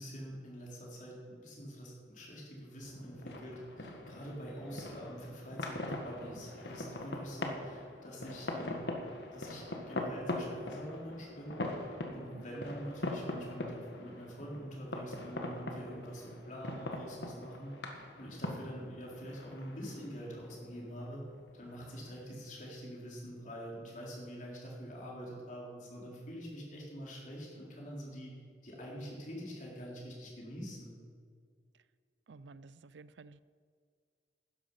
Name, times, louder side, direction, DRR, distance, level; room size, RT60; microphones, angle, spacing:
voice 1, 0.0-8.8 9.3-11.6 12.1-21.2 21.5-28.4 28.6-30.9, equal, 45° left, -3 dB, 3.8 m, -45 dB
sound 1, 2.8-22.1, left 1 dB, 75° left, 1.6 m, -42 dB
voice 2, 32.3-33.4, right 3 dB, 85° right, 17 dB, 0.5 m, -53 dB
13.0 x 10.5 x 5.5 m, 2.1 s
head